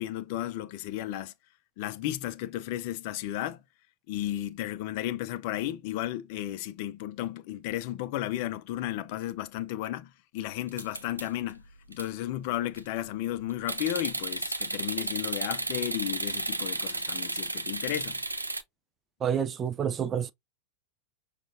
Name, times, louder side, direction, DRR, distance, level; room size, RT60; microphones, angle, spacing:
voice 1, 0.0-1.3 1.8-3.6 4.1-11.6 11.9-18.2, left 13 dB, 45° left, 0.5 m, -34 dB
sound 1, 10.7-11.5 11.9-12.1 12.5-12.9 13.7-18.6, right 2 dB, 80° right, 0.5 m, -33 dB
voice 2, 19.2-20.3, right 8 dB, 25° right, 0.4 m, -28 dB
6.2 x 2.4 x 2.6 m
figure-of-eight pair, 90°, 0 cm